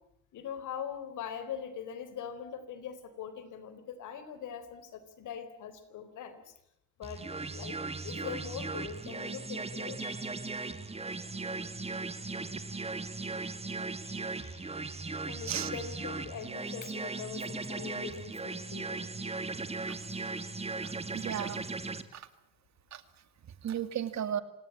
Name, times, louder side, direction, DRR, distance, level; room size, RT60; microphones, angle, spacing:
voice 1, 0.3-6.4 7.0-7.2 7.5-7.8 8.0-10.4 14.0-14.8 15.3-19.1, left 8 dB, 80° left, 12 dB, 4.0 m, -42 dB
sound 1, 7.0-22.0, right 3 dB, 20° right, 2.0 m, -38 dB
voice 2, 20.8-21.6 22.1-22.3 22.9-23.0 23.6-24.4, right 10 dB, 65° right, 11 dB, 2.3 m, -35 dB
27.5 x 18.5 x 8.6 m, 0.78 s
cardioid pair, 90°, 30 cm